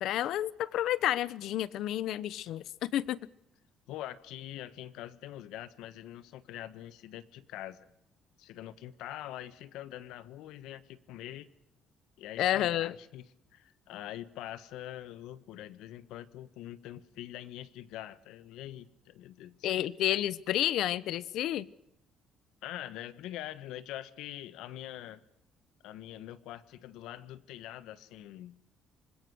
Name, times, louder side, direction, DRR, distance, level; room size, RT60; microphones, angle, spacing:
voice 1, 0.0-3.2 12.4-12.9 19.6-21.7, left 12 dB, 70° left, 0.9 m, -30 dB
voice 2, 3.9-7.9 8.4-11.5 12.2-19.6 22.6-25.2 25.8-28.6, left 13 dB, 90° left, 1.3 m, -44 dB
25.5 x 21.0 x 6.4 m
cardioid pair, 140°, 0 cm